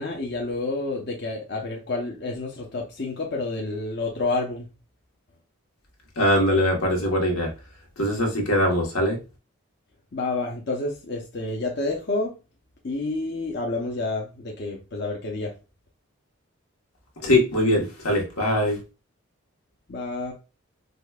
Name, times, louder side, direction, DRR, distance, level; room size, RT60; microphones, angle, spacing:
voice 1, 0.0-4.7 10.1-12.3 12.8-15.5 19.9-20.3, left 2 dB, 50° left, 0.6 m, -29 dB
voice 2, 6.2-7.5 8.0-9.2 17.2-18.8, left 1 dB, 85° left, 1.3 m, -22 dB
5.0 x 2.1 x 2.4 m
head